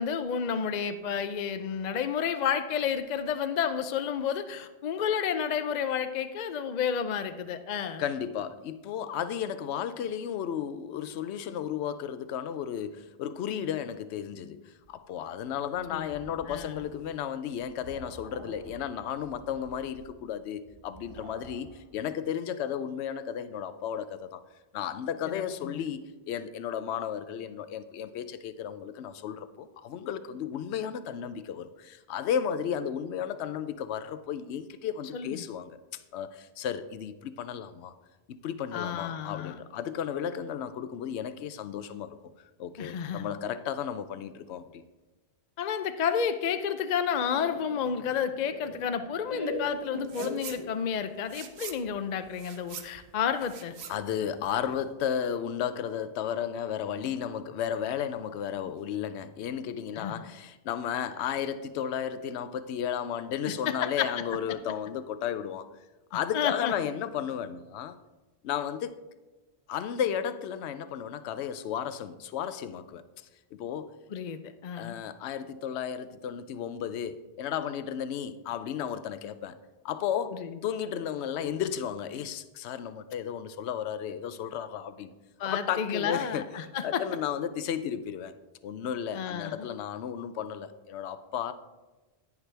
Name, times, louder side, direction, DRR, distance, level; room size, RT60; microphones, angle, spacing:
voice 1, 0.0-8.0 15.9-16.1 16.5-16.7 25.2-25.9 35.1-35.5 38.7-39.6 42.8-43.3 45.6-53.7 59.9-60.1 63.4-64.1 66.3-66.7 74.1-75.0 80.3-80.5 85.4-87.0 89.1-89.7, left 7 dB, 50° left, 0.6 m, -31 dB
voice 2, 8.0-24.4 24.7-35.8 36.1-37.9 38.4-42.2 42.6-44.8 53.9-65.7 66.1-68.0 68.4-69.0 69.7-73.0 73.5-73.9 74.7-79.6 79.8-85.1 85.4-86.5 86.8-88.3 88.6-91.5, left 8 dB, 80° left, 0.9 m, -34 dB
sound 1, 14.8-21.9, right 3 dB, 40° right, 0.6 m, -51 dB
Laughter, 47.3-51.0, left 1 dB, 25° left, 0.9 m, -38 dB
sound 2, 50.0-50.6 50.9-54.9, right 7 dB, 75° right, 1.0 m, -44 dB
10.5 x 9.6 x 3.3 m
omnidirectional pair, 1.1 m